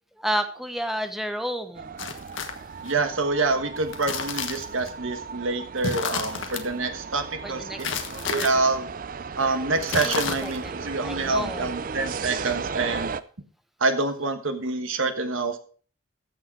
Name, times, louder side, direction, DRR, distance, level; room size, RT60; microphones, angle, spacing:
voice 1, 0.2-1.9 7.4-7.8 8.3-8.6 10.0-10.8 11.0-11.7, equal, ahead, 7 dB, 0.8 m, -31 dB
sound 1, 1.7-13.2, right 5 dB, 40° right, 0.4 m, -36 dB
sound 2, 2.0-2.9 3.8-4.9 5.8-6.6 7.8-8.5 9.8-10.7, left 5 dB, 70° left, 1.3 m, -31 dB
voice 2, 2.8-7.9 8.1-8.9 9.4-13.1 13.8-15.6, right 3 dB, 75° right, 7 dB, 1.3 m, -26 dB
14.0 x 6.4 x 4.7 m, 0.42 s
head